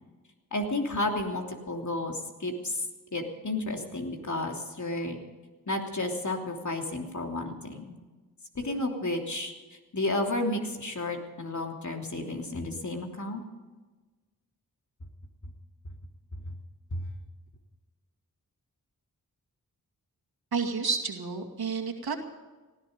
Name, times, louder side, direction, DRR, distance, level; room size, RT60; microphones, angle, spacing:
voice 1, 0.5-2.8 3.1-5.2 5.7-8.0 8.5-13.4 16.9-17.0, left 2 dB, 50° left, 2 dB, 3.1 m, -32 dB
voice 2, 20.5-22.2, right 5 dB, 75° right, 2 dB, 2.3 m, -30 dB
19.0 x 14.0 x 5.2 m, 1.3 s
cardioid pair, 40°, 38 cm